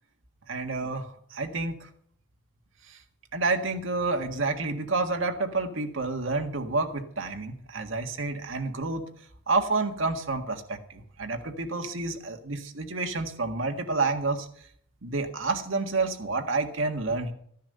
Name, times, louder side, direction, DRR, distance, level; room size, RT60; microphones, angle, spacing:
voice 1, 0.5-1.8 2.9-3.0 3.3-9.1 9.5-10.8 11.2-14.5 15.0-17.3, right 3 dB, 80° right, 5 dB, 1.7 m, -29 dB
14.5 x 10.0 x 6.7 m, 0.64 s
head